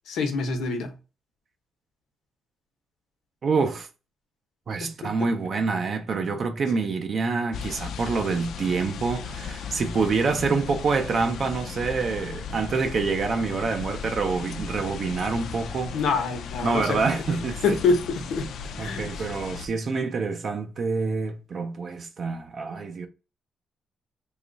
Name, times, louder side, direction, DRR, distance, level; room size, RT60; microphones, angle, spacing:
voice 1, 0.1-0.9 4.8-5.3 15.9-17.4 17.6-18.5 18.8-19.3, left 4 dB, 90° left, 0.8 m, -26 dB
voice 2, 3.4-3.9 4.7-15.9 16.6-17.7 18.8-23.1, right 4 dB, 40° right, 0.4 m, -26 dB
sound 1, 7.5-19.7, left 6 dB, 65° left, 0.4 m, -36 dB
2.9 x 2.3 x 3.8 m
cardioid pair, 165°, 0 cm